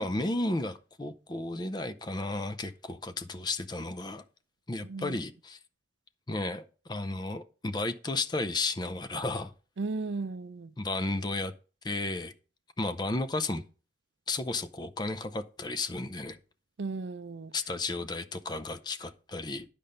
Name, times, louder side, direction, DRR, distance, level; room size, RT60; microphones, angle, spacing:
voice 1, 0.0-4.2 4.7-5.6 6.3-9.5 10.8-11.5 11.8-12.3 12.8-13.6 14.3-16.4 17.5-19.7, left 2 dB, 25° left, 0.5 m, -33 dB
voice 2, 4.8-5.2 9.8-10.7 16.8-17.5, right 3 dB, 75° right, 0.5 m, -35 dB
10.5 x 5.2 x 5.5 m
head